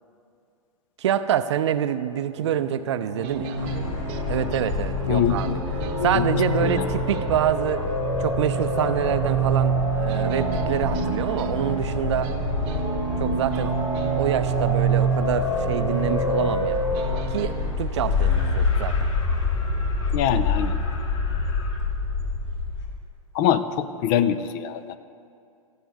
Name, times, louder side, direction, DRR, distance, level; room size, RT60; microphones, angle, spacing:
voice 1, 1.0-3.7 4.3-5.6 6.0-7.8 8.2-12.3 13.2-13.8 14.1-17.0 17.3-19.0, right 10 dB, 50° right, 12 dB, 0.6 m, -26 dB
sound 1, 2.3-17.8, right 7 dB, 35° right, 1.0 m, -38 dB
sound 2, 2.5-17.2, right 2 dB, 80° left, 3.0 m, -27 dB
sound 3, 3.6-22.9, left 4 dB, 55° left, 2.5 m, -28 dB
voice 2, 5.1-5.6 6.1-6.2 6.6-6.9 20.1-20.8 23.3-25.0, left 9 dB, 35° left, 13 dB, 0.6 m, -24 dB
19.0 x 14.0 x 3.5 m, 2.5 s
figure-of-eight pair, 105°, 18 cm